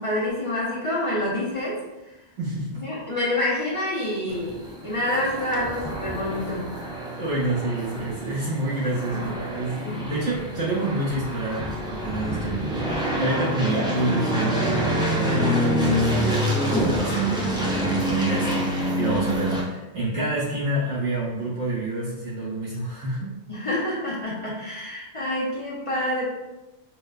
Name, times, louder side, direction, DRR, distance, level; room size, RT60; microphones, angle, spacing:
voice 1, 0.0-2.1 2.8-6.8 9.1-9.3 9.8-10.0 18.8-19.1 23.5-26.2, left 1 dB, 35° left, -6 dB, 0.7 m, -28 dB
voice 2, 2.4-2.8 7.2-23.3 25.1-25.3, right 2 dB, 90° right, -10 dB, 1.9 m, -28 dB
sound 1, 4.3-19.6, equal, 5° right, 0.4 m, -27 dB
4.9 x 2.1 x 2.3 m, 1.0 s
omnidirectional pair, 1.1 m